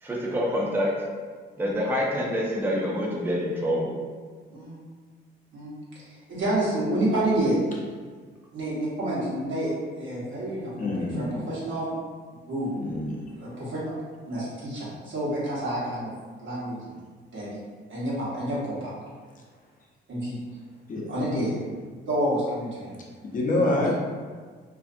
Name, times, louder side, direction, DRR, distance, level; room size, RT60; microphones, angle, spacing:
voice 1, 0.0-0.9 1.6-3.9, equal, 10° right, -3 dB, 0.5 m, -26 dB
voice 2, 4.5-4.8 5.5-5.7 6.1-7.6 8.5-9.7 10.0-11.9 12.5-12.7 13.3-13.8 14.3-16.1 16.4-17.0 17.3-17.6 17.9-18.9 20.1-20.4 21.1-21.5 22.1-23.0 23.7-23.8, right 1 dB, 70° right, -8 dB, 1.1 m, -29 dB
voice 3, 10.8-11.5 12.8-13.2 20.9-21.1 23.2-23.9, left 2 dB, 40° left, -2 dB, 0.6 m, -26 dB
2.6 x 2.4 x 2.5 m, 1.5 s
cardioid pair, 90°, 20 cm